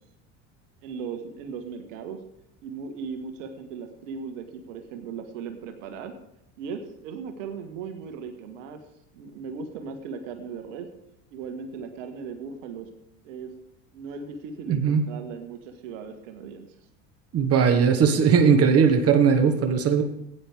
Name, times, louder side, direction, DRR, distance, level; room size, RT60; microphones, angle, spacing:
voice 1, 0.8-2.2 2.6-6.1 6.6-8.8 9.1-10.9 11.3-12.9 13.2-13.5 13.9-16.7, right 5 dB, 75° right, 6 dB, 1.6 m, -37 dB
voice 2, 14.7-15.1 17.3-20.0, right 6 dB, 40° right, 6 dB, 1.6 m, -19 dB
15.5 x 9.6 x 3.6 m, 0.79 s
hypercardioid pair, 85°, 38 cm